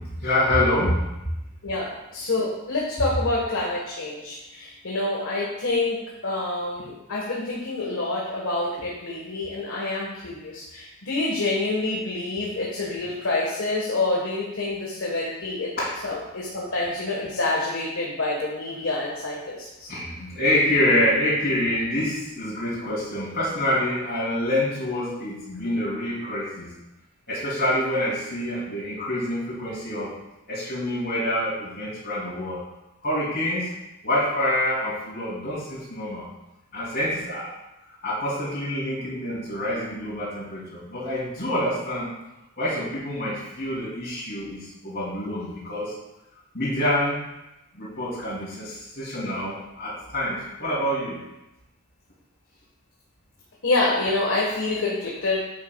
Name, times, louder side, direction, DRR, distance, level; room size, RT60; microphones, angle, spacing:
voice 1, 0.2-1.0 15.8-16.0 19.9-26.7 27.3-30.1 30.5-32.6 33.0-33.7 34.0-36.3 36.7-37.5 38.0-42.1 42.6-45.9 46.5-47.2 47.7-51.2, left 1 dB, 45° left, -12 dB, 3.1 m, -26 dB
voice 2, 1.6-15.7 16.0-19.9 53.6-55.4, left 2 dB, 65° left, -4 dB, 1.4 m, -27 dB
9.5 x 8.5 x 2.4 m, 0.95 s
head